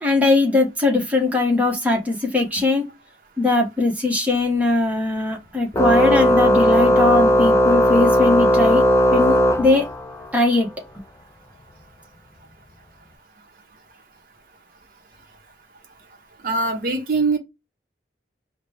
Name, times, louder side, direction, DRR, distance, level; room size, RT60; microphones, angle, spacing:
voice 1, 0.0-2.9 3.4-8.8 9.1-9.9 10.3-10.7, left 2 dB, 10° right, 1.0 m, -20 dB
Organ, 5.7-10.3, equal, 15° left, 0.3 m, -17 dB
voice 2, 16.4-17.4, right 3 dB, 50° right, 0.7 m, -22 dB
4.9 x 2.1 x 3.2 m
head